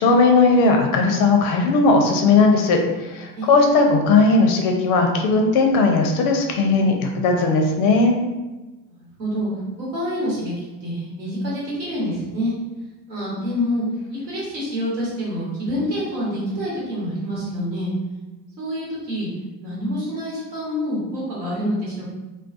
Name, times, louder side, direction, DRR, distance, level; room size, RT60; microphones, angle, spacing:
voice 1, 0.0-8.2, left 3 dB, 45° left, 2 dB, 0.4 m, -17 dB
voice 2, 3.3-3.6 9.2-9.5 9.8-10.5 10.8-12.5 13.1-17.9 18.6-19.3 19.6-22.1, equal, 85° right, -7 dB, 1.2 m, -27 dB
2.3 x 2.2 x 2.4 m, 1.1 s
hypercardioid pair, 80°, 50 cm